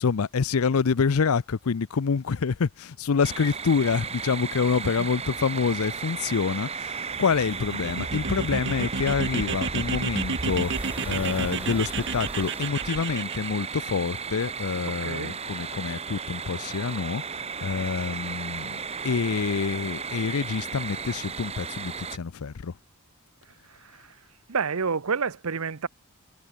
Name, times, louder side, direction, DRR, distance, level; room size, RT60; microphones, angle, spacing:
voice 1, 0.0-18.8 19.0-22.7, left 5 dB, 75° left, 0.5 m, -27 dB
sound 1, 3.2-22.2, right 5 dB, 30° right, 1.3 m, -35 dB
sound 2, 7.1-12.7, right 1 dB, 5° right, 1.5 m, -45 dB
sound 3, 7.4-13.5, right 4 dB, 55° right, 1.6 m, -31 dB
voice 2, 14.8-15.4 23.8-24.1 24.5-25.9, right 5 dB, 75° right, 0.8 m, -29 dB
head